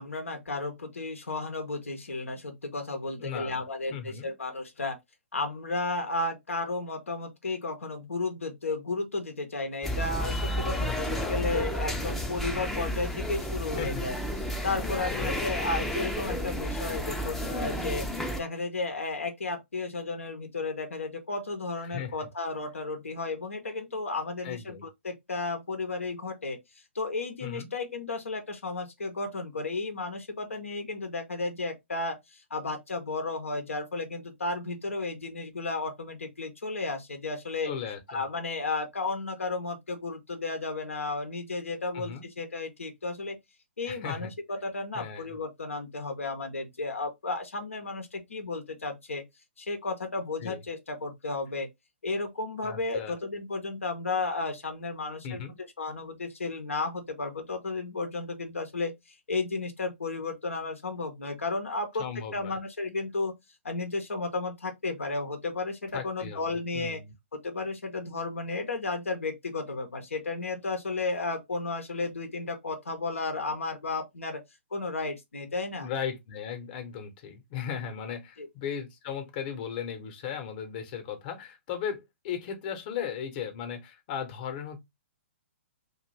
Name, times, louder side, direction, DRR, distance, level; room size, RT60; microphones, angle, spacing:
voice 1, 0.0-5.0 5.3-14.2 14.6-18.1 18.3-26.6 26.9-37.7 38.1-43.4 43.8-49.2 49.6-51.7 52.0-55.4 55.8-62.1 62.3-63.3 63.6-67.0 67.4-74.4 74.7-75.9 78.4-78.5, left 3 dB, 85° left, 0.7 m, -33 dB
voice 2, 3.2-3.6 3.9-4.3 10.8-11.5 13.8-14.1 15.1-15.5 21.8-22.1 24.4-24.9 27.4-27.7 37.6-38.2 41.9-42.3 43.9-44.3 44.9-45.4 50.4-50.6 52.6-53.2 55.2-55.5 62.0-62.6 65.9-66.4 66.7-67.1 75.8-84.8, left 8 dB, 40° left, 0.8 m, -37 dB
sound 1, 9.8-18.4, equal, 5° left, 0.5 m, -31 dB
2.5 x 2.2 x 3.1 m
figure-of-eight pair, 125°, 7 cm